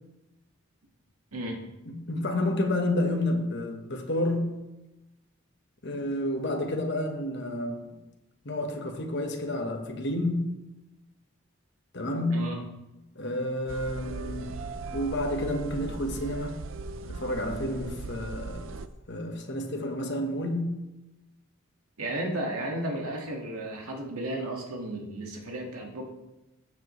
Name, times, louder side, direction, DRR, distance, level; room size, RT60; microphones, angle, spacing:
voice 1, 1.9-4.6 5.8-8.0 8.4-10.5 11.9-12.5 13.1-14.6 14.9-16.6 17.1-18.7 19.1-20.8, left 1 dB, 50° left, 1.2 m, -30 dB
sound 1, 13.7-18.9, right 3 dB, 60° right, 0.5 m, -38 dB
voice 2, 22.0-26.1, right 1 dB, 85° right, 1.9 m, -33 dB
14.5 x 7.3 x 3.2 m
head